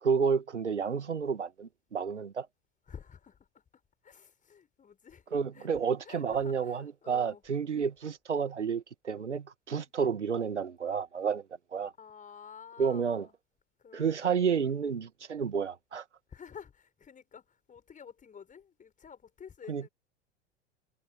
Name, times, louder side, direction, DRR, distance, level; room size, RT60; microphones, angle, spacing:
voice 1, 0.0-2.5 5.3-11.4 11.7-11.9 12.8-13.3 13.9-16.0 19.7-19.8, right 6 dB, 80° right, 2.1 m, -30 dB
voice 2, 2.9-5.3 5.5-7.4 9.7-9.9 12.0-13.3 13.8-14.7 16.3-19.9, left 7 dB, 20° left, 7.0 m, -51 dB
figure-of-eight pair, 85°, 35 cm